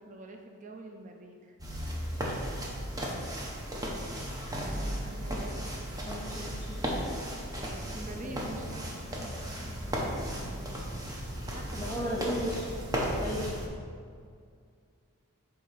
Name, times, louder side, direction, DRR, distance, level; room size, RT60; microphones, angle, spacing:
voice 1, 0.0-1.6 5.0-5.9 7.7-10.2 11.5-12.1, right 2 dB, 35° right, 3 dB, 0.5 m, -47 dB
sound 1, 1.6-13.7, equal, 15° right, 0.8 m, -35 dB
voice 2, 4.7-5.2 6.0-7.0 8.0-8.2 11.7-12.7 13.2-13.4, equal, 15° left, -6 dB, 0.6 m, -36 dB
8.2 x 2.9 x 5.7 m, 2.2 s
head